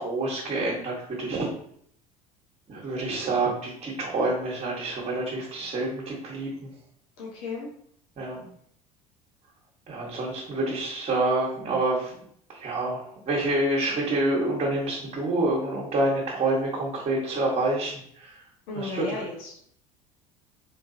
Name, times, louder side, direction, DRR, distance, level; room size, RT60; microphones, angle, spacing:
voice 1, 0.0-1.5 2.7-6.7 8.2-8.4 9.9-12.2 12.5-18.4 18.7-19.2, right 2 dB, 35° right, -6 dB, 1.4 m, -27 dB
voice 2, 7.2-7.7 18.7-19.6, left 3 dB, 65° left, -2 dB, 1.3 m, -34 dB
4.0 x 3.2 x 2.8 m, 0.64 s
figure-of-eight pair, 65°, 19 cm